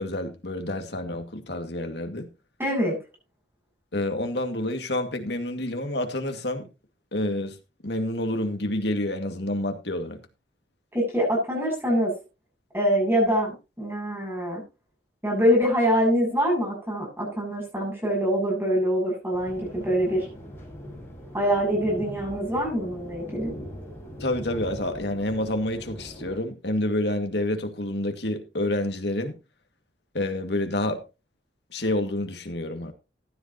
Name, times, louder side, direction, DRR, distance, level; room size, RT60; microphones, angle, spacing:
voice 1, 0.0-2.3 3.9-6.7 7.1-7.6 7.8-10.2 24.2-29.4 30.1-31.0 31.7-32.9, left 1 dB, 65° left, 2.3 m, -28 dB
voice 2, 2.6-3.0 10.9-12.1 12.7-14.6 15.2-20.3 21.3-23.5, equal, 10° right, 7.6 m, -24 dB
sound 1, 19.3-26.4, equal, 15° left, 7.7 m, -40 dB
15.0 x 10.5 x 3.0 m
head